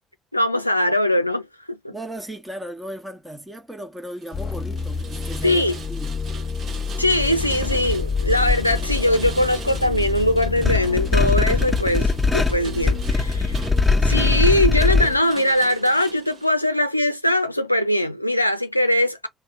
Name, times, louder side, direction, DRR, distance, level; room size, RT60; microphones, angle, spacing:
voice 1, 0.3-1.9 5.4-5.7 7.0-13.6 14.0-19.3, left 1 dB, 90° left, 0.4 m, -21 dB
voice 2, 1.9-6.2, right 1 dB, 10° right, 1.2 m, -36 dB
Rain, 4.1-16.5, right 6 dB, 45° right, 1.0 m, -41 dB
sound 1, 4.3-15.2, left 5 dB, 35° left, 1.1 m, -30 dB
sound 2, 7.2-15.1, left 3 dB, 10° left, 1.2 m, -22 dB
3.3 x 2.7 x 3.1 m
figure-of-eight pair, 50°, 0 cm